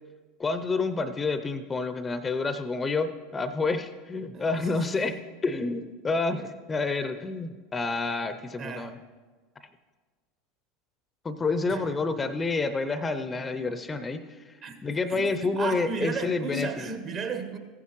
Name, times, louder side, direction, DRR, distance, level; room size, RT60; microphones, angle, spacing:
voice 1, 0.4-9.0 11.2-14.6 14.8-16.7, left 3 dB, 20° left, 12 dB, 0.6 m, -29 dB
voice 2, 4.3-4.7 8.6-8.9 11.7-11.9 14.6-14.7 15.1-15.2 15.6-17.6, right 4 dB, 45° right, 6 dB, 1.3 m, -34 dB
15.0 x 9.8 x 3.1 m, 1.4 s
hypercardioid pair, 85°, 0 cm